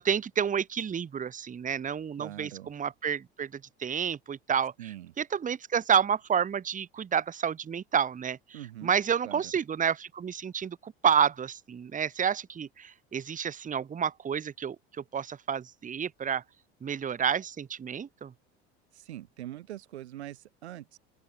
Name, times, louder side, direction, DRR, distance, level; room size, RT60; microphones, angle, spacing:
voice 1, 0.0-3.5 3.8-4.7 5.2-14.8 15.1-16.4 16.8-18.3, right 7 dB, 25° right, 1.1 m, -29 dB
voice 2, 2.2-2.7 4.8-5.1 8.5-9.0 9.2-9.5 18.9-21.0, right 13 dB, 85° right, 1.1 m, -43 dB
open air
hypercardioid pair, 75°, 32 cm